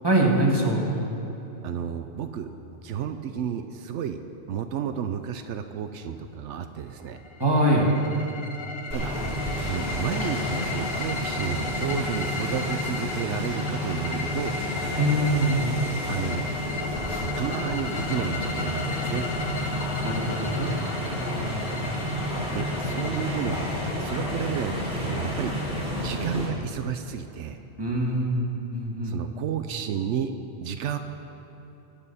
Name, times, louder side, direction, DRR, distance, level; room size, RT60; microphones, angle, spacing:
voice 1, 0.0-0.8 7.4-7.9 15.0-15.8 20.0-20.7 21.4-21.7 27.8-29.1, right 1 dB, 20° right, -3 dB, 2.2 m, -23 dB
voice 2, 1.6-2.5 2.8-4.2 4.5-7.2 8.9-9.1 9.6-14.6 16.1-16.5 17.3-19.2 22.5-23.7 24.0-25.5 26.0-27.6 29.0-31.0, right 8 dB, 85° right, 8 dB, 0.9 m, -32 dB
sound 1, 7.2-25.0, left 4 dB, 60° left, 1.1 m, -36 dB
sound 2, 8.9-26.5, equal, 5° right, 3.6 m, -30 dB
24.0 x 8.6 x 4.2 m, 3.0 s
omnidirectional pair, 1.2 m